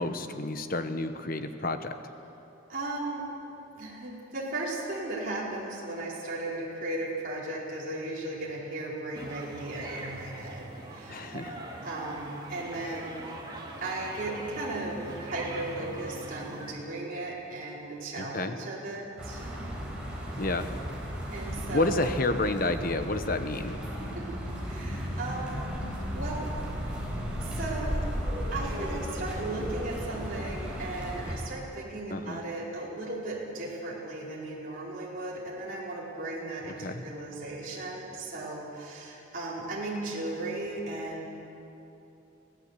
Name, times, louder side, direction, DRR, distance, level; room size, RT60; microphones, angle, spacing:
voice 1, 0.0-1.9 11.1-11.6 18.2-18.6 20.4-20.7 21.7-23.8 32.1-32.4 36.8-37.0, left 2 dB, 45° left, 8 dB, 1.1 m, -30 dB
voice 2, 2.7-3.2 3.8-11.4 11.8-13.2 13.8-19.4 21.3-22.1 24.1-24.2 24.6-25.6 26.1-26.5 27.4-28.0 28.5-41.4, right 2 dB, 40° right, -6 dB, 4.6 m, -36 dB
sound 1, 9.1-16.7, right 2 dB, 20° right, 2.6 m, -42 dB
sound 2, 19.2-31.4, equal, 5° right, 4.4 m, -35 dB
23.5 x 16.0 x 8.2 m, 2.9 s
head